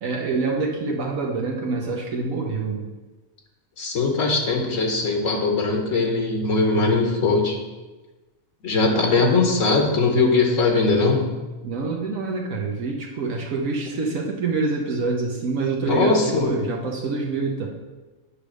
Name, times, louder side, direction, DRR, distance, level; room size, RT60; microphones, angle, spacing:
voice 1, 0.0-2.9 8.9-9.1 11.6-17.7, right 4 dB, 80° right, -1 dB, 1.3 m, -26 dB
voice 2, 3.8-7.6 8.6-11.2 15.8-16.5, left 3 dB, 70° left, 2 dB, 1.4 m, -20 dB
9.7 x 3.4 x 6.3 m, 1.2 s
omnidirectional pair, 1.4 m